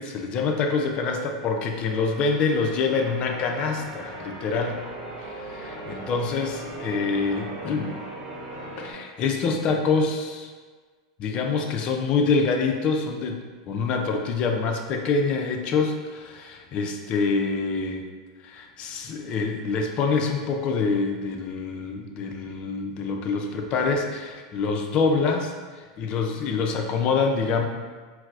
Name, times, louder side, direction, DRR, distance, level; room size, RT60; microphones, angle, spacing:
voice 1, 0.0-4.8 5.2-7.9 8.8-10.5 11.2-18.0 18.4-25.5 26.0-27.7, left 4 dB, 40° left, 3 dB, 0.4 m, -26 dB
Church bell, 1.6-8.9, right 1 dB, 40° right, 0.9 m, -39 dB
4.3 x 2.0 x 2.4 m, 1.5 s
hypercardioid pair, 115°, 3 cm